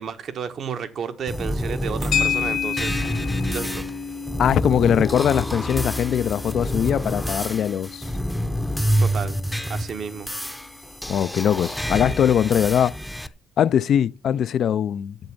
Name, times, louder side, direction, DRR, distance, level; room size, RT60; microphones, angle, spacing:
voice 1, 0.0-3.0 3.5-3.9 9.0-9.4 9.7-10.3, right 7 dB, 65° right, 1.1 m, -32 dB
sound 1, 1.3-13.3, equal, 5° left, 0.6 m, -28 dB
sound 2, 2.1-10.5, left 7 dB, 85° left, 2.1 m, -32 dB
voice 2, 4.4-8.1 11.1-13.0 13.6-15.2, left 9 dB, 65° left, 0.4 m, -21 dB
7.9 x 7.2 x 7.0 m
cardioid pair, 90°, 0 cm